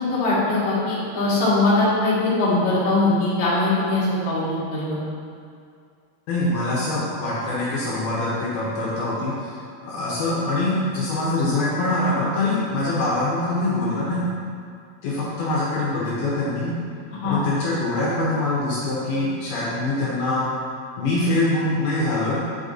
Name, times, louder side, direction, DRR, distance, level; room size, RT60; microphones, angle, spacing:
voice 1, 0.1-5.0 17.2-17.4, left 2 dB, 55° left, -10 dB, 1.7 m, -21 dB
voice 2, 6.3-14.3 15.0-16.8 17.2-20.5 21.0-22.4, left 2 dB, 75° left, -8 dB, 2.5 m, -24 dB
7.6 x 5.1 x 2.6 m, 2.3 s
omnidirectional pair, 5.0 m